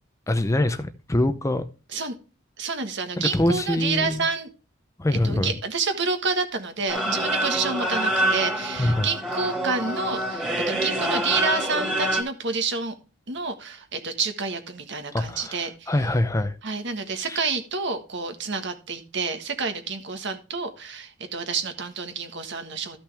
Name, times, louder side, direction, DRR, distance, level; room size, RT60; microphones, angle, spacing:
voice 1, 0.3-1.6 3.2-4.3 5.0-5.5 8.8-9.1 15.1-16.6 17.2-17.5, left 1 dB, 15° left, 0.6 m, -24 dB
voice 2, 2.6-4.5 5.2-12.9 13.3-15.9 16.6-23.0, right 4 dB, 60° right, 1.5 m, -29 dB
sound 1, 6.9-12.2, right 1 dB, 5° right, 2.3 m, -26 dB
13.5 x 6.0 x 3.4 m
head